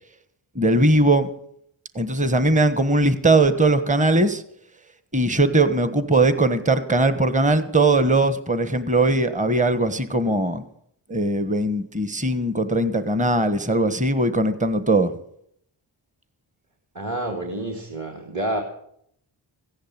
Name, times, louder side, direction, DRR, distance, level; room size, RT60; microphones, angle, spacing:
voice 1, 0.5-1.3 1.9-4.4 5.1-10.6 11.1-15.1, right 2 dB, 15° right, 11 dB, 1.3 m, -20 dB
voice 2, 16.9-18.6, right 1 dB, 40° right, 1 dB, 2.5 m, -28 dB
15.5 x 10.5 x 7.5 m, 0.71 s
cardioid pair, 65°, 45 cm